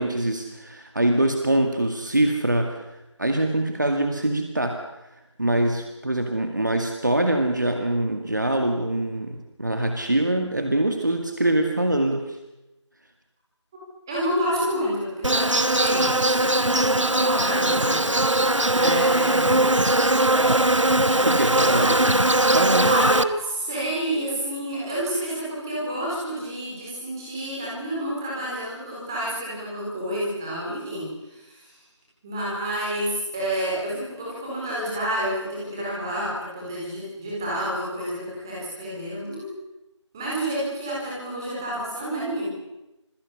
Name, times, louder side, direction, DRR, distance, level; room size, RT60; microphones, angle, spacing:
voice 1, 0.0-2.8 3.2-4.8 5.4-12.4 15.9-16.1 18.8-19.0 21.2-22.0 22.5-22.9, right 1 dB, 40° right, 5 dB, 2.1 m, -24 dB
voice 2, 14.1-18.1 18.7-19.5 21.7-21.9 22.9-31.7 32.2-39.5 40.1-42.5, equal, 5° right, -6 dB, 4.3 m, -29 dB
Insect, 15.2-23.2, right 1 dB, 80° right, 1.4 m, -20 dB
27.0 x 22.0 x 7.0 m, 0.96 s
figure-of-eight pair, 170°, 16 cm